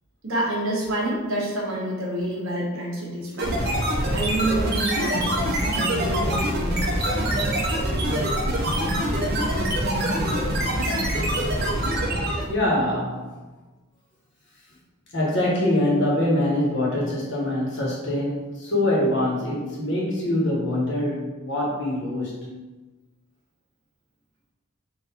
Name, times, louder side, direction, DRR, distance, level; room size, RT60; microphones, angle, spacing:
voice 1, 0.2-3.6 4.1-6.8, right 1 dB, 60° right, -3 dB, 1.0 m, -28 dB
sound 1, 3.4-12.6, right 1 dB, 45° right, 0.6 m, -24 dB
voice 2, 12.5-13.2 15.1-22.3, left 1 dB, 55° left, -4 dB, 1.2 m, -24 dB
3.9 x 2.5 x 4.2 m, 1.2 s
head